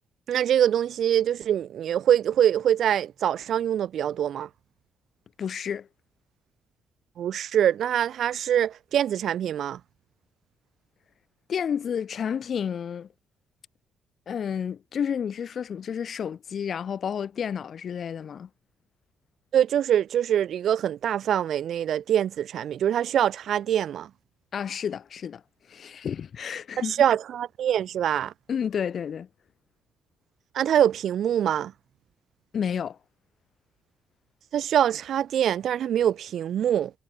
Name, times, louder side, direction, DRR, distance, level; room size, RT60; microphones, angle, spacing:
voice 1, 0.3-4.5 7.2-9.8 19.5-24.1 26.8-28.3 30.5-31.7 34.5-36.9, right 10 dB, 65° right, 2.3 m, -24 dB
voice 2, 5.4-5.9 11.5-13.1 14.3-18.5 24.5-25.4 25.7-27.0 28.5-29.3 32.5-33.0, left 7 dB, 55° left, 1.2 m, -30 dB
cardioid pair, 90°, 0 cm